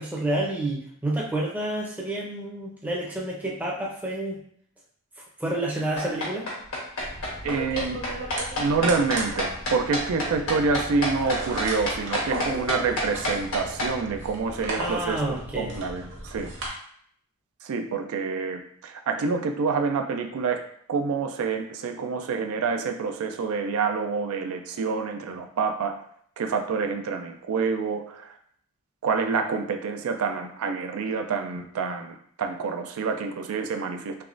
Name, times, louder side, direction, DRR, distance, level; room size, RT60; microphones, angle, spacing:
voice 1, 0.0-4.4 5.4-6.5 14.8-15.8, right 1 dB, 5° right, -3 dB, 0.5 m, -29 dB
sound 1, 6.0-13.9, left 1 dB, 75° left, 1.2 m, -28 dB
sound 2, 7.0-16.7, right 2 dB, 55° right, 0.9 m, -36 dB
voice 2, 7.4-8.0 8.6-16.5 17.6-20.6 20.9-26.0 26.4-28.4 29.0-34.2, right 4 dB, 80° right, 6 dB, 0.4 m, -27 dB
3.4 x 3.0 x 2.5 m, 0.63 s
head